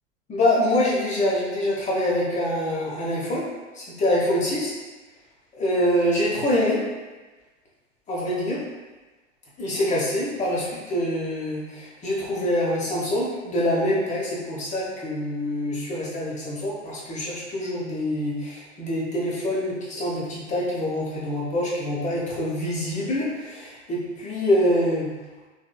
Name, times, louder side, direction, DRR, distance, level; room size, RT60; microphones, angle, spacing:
voice 1, 0.3-3.5 3.7-4.7 5.6-6.8 8.1-8.6 9.6-25.1, left 1 dB, 20° left, -5 dB, 0.9 m, -25 dB
3.5 x 3.3 x 2.2 m, 1.2 s
figure-of-eight pair, 85°, 37 cm